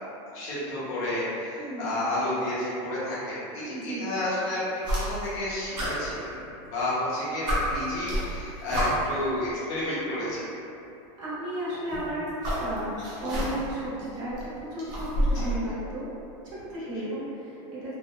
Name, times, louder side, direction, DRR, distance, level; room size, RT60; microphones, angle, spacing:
voice 1, 0.3-6.4 6.7-10.6 15.3-15.6 16.8-17.0, left 1 dB, 50° left, -9 dB, 1.1 m, -31 dB
voice 2, 1.6-1.9 3.7-4.1 9.8-10.1 11.2-12.3 12.6-16.1 16.4-18.0, right 1 dB, 90° right, -10 dB, 1.3 m, -34 dB
sound 1, 4.8-5.4 5.7-6.8 7.1-7.2 7.5-9.2 10.3-10.4 11.7-13.8 14.1-15.6, equal, 25° right, 0.6 m, -29 dB
3.3 x 2.2 x 2.2 m, 2.7 s
supercardioid pair, 165°, 16 cm